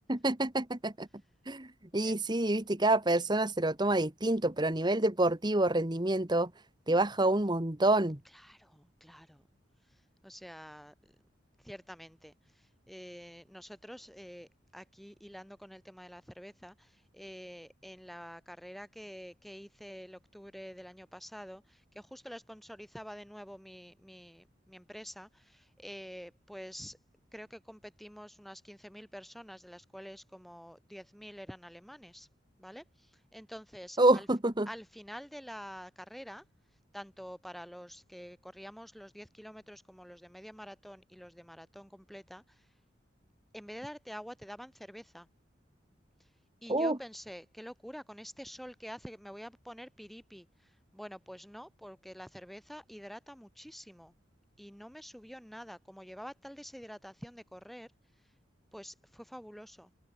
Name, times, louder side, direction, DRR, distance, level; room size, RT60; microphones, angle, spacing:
voice 1, 0.1-1.1 1.5-1.7 1.9-6.5 6.9-8.2 34.0-34.7 46.7-47.0, right 2 dB, 25° right, 1.5 m, -27 dB
voice 2, 8.3-9.5 9.9-11.1 11.6-27.0 27.3-32.3 32.6-34.3 34.7-36.4 36.9-42.7 43.5-45.3 46.6-54.1 54.6-57.9 58.7-59.9, equal, ahead, 7.5 m, -48 dB
open air
head